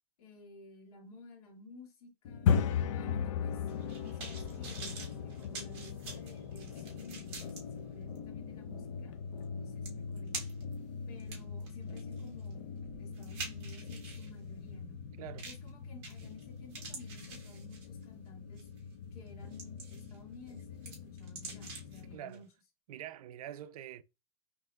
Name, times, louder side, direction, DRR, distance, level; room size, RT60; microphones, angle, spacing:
voice 1, 0.2-2.5 2.9-3.6 4.0-9.1 9.5-10.4 11.1-15.0 15.5-18.7 19.1-22.5, left 3 dB, 80° left, 1.8 m, -54 dB
sound 1, 2.2-22.1, left 6 dB, 55° left, 0.5 m, -39 dB
sound 2, 3.7-7.6 8.2-8.3 9.4-9.5 9.9-10.7 11.2-14.3 15.4-15.7 16.0-16.4 16.7-18.0 18.6-18.8 19.3-20.2 20.5-22.0 22.3-22.4, right 4 dB, 30° right, 1.3 m, -46 dB
voice 2, 22.1-22.4 22.9-24.0, right 11 dB, 75° right, 0.5 m, -45 dB
5.7 x 2.9 x 2.2 m
supercardioid pair, 165°, 19 cm